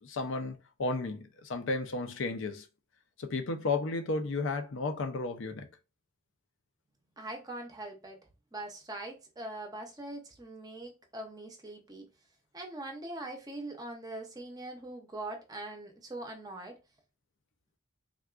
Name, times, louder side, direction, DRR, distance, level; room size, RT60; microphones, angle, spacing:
voice 1, 0.0-2.7 3.2-5.7, left 3 dB, 65° left, 0.5 m, -33 dB
voice 2, 7.2-8.2 8.5-12.1 12.5-16.8, right 2 dB, 20° right, 0.6 m, -42 dB
3.6 x 2.3 x 2.3 m
head